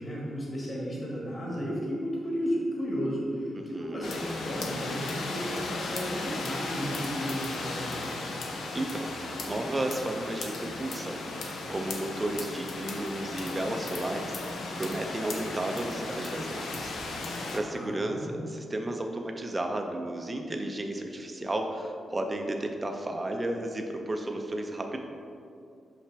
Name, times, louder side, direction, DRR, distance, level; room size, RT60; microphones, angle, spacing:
voice 1, 0.0-8.3 17.7-18.4, equal, 30° left, -5 dB, 1.4 m, -34 dB
voice 2, 3.5-4.1 8.7-9.1 9.4-17.0 17.3-25.0, right 1 dB, 15° right, 3 dB, 0.4 m, -33 dB
sound 1, 4.0-17.6, left 3 dB, 70° left, 0.7 m, -36 dB
5.8 x 5.6 x 3.4 m, 2.5 s
wide cardioid pair, 175°, 0 cm